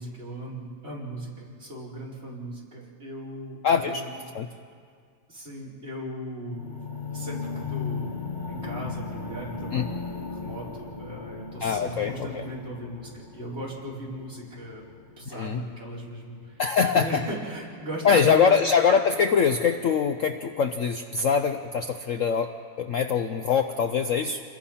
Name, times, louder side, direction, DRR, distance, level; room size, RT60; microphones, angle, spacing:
voice 1, 0.0-4.1 5.3-6.7 7.1-14.8 15.2-18.6, right 1 dB, 30° right, -4 dB, 4.9 m, -38 dB
voice 2, 3.6-4.1 4.3-4.5 9.7-9.8 11.6-12.5 15.3-15.6 16.6-17.2 18.0-24.4, left 6 dB, 75° left, 7 dB, 0.7 m, -23 dB
sound 1, 6.5-16.6 17.3-17.4, left 5 dB, 40° left, 0.7 m, -37 dB
28.0 x 21.5 x 5.8 m, 2.1 s
omnidirectional pair, 2.3 m